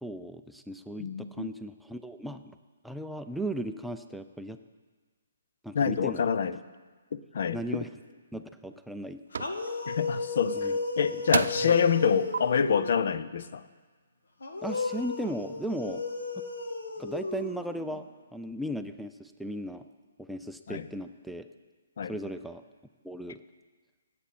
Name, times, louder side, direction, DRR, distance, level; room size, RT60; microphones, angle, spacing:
voice 1, 0.0-2.6 2.8-4.6 5.6-6.3 7.5-7.9 8.3-9.5 10.5-10.8 11.6-11.8 14.6-16.0 17.0-19.9 20.2-21.5 22.1-22.6 23.0-23.4, right 1 dB, ahead, 7 dB, 0.4 m, -37 dB
voice 2, 1.0-1.5 5.7-6.6 7.1-7.9 9.9-13.6 20.7-20.9 22.0-22.1, left 7 dB, 60° left, 14 dB, 0.6 m, -27 dB
sound 1, 7.9-8.1 8.6-9.0 9.3-9.5 10.7-10.8 11.3-11.8 12.3-12.4, right 5 dB, 70° right, 0.4 m, -30 dB
sound 2, 9.3-13.1 14.4-18.0, left 3 dB, 85° left, 1.7 m, -34 dB
18.0 x 8.5 x 4.3 m, 1.4 s
hypercardioid pair, 160°, 0 cm